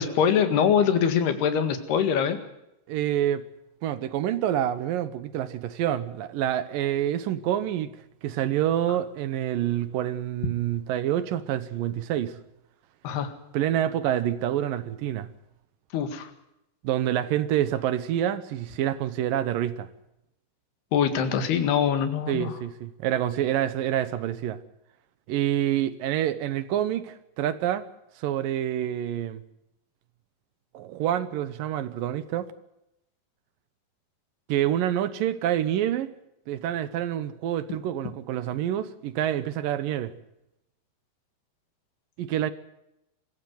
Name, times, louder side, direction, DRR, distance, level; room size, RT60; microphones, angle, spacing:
voice 1, 0.0-2.4 13.0-13.3 15.9-16.3 20.9-22.6, left 8 dB, 85° left, 4.0 m, -23 dB
voice 2, 2.9-3.4 3.8-7.9 8.2-12.4 13.5-15.3 16.8-19.9 22.3-24.6 25.3-27.9 28.2-29.4 30.7-32.5 34.5-36.1 36.5-40.1 42.2-42.5, right 11 dB, 70° right, 2.5 m, -27 dB
23.5 x 15.0 x 9.3 m
omnidirectional pair, 4.5 m